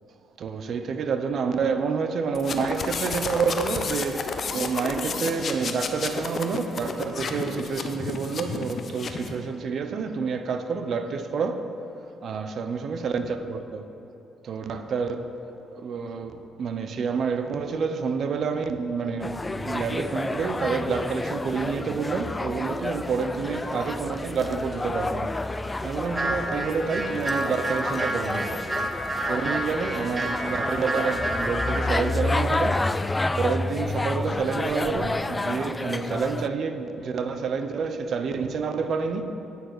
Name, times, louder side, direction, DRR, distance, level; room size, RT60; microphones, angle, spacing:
voice 1, 0.4-11.7 12.2-13.8 14.4-15.3 15.7-25.4 25.8-28.7 29.3-32.9 33.4-39.3, right 5 dB, 60° right, 0.8 m, -28 dB
sound 1, 2.3-9.4, left 5 dB, 50° left, 0.9 m, -31 dB
sound 2, 19.2-36.5, left 2 dB, 20° left, 0.3 m, -30 dB
sound 3, 26.1-31.9, right 1 dB, 20° right, 1.5 m, -30 dB
9.5 x 6.6 x 7.9 m
cardioid pair, 90°, 0 cm